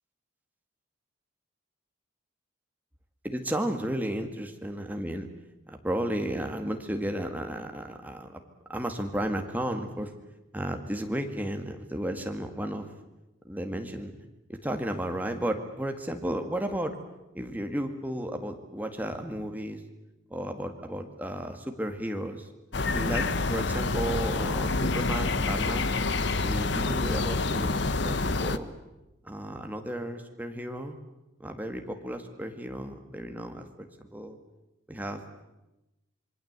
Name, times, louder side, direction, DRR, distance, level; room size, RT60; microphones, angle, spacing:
voice 1, 3.2-5.3 5.7-8.4 8.7-10.1 10.5-12.9 13.4-17.0 17.3-19.8 20.3-22.5 22.9-26.0 26.4-28.7 29.2-31.0 31.4-34.4 34.9-35.2, right 1 dB, 10° right, 5 dB, 1.9 m, -33 dB
sound 1, 22.7-28.6, left 3 dB, 55° left, 0.9 m, -27 dB
26.5 x 22.5 x 8.1 m, 0.98 s
head